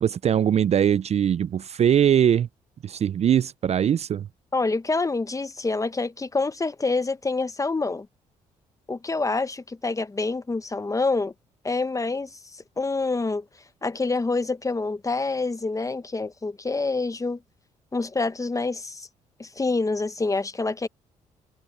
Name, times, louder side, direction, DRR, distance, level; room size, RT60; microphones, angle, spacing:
voice 1, 0.0-2.5 2.8-4.3, right 9 dB, 45° right, 0.4 m, -21 dB
voice 2, 4.5-8.1 8.9-11.3 11.6-12.4 12.8-13.4 13.8-17.4 17.9-19.1 19.4-20.9, left 3 dB, 20° left, 1.2 m, -26 dB
supercardioid pair, 60°, 15 cm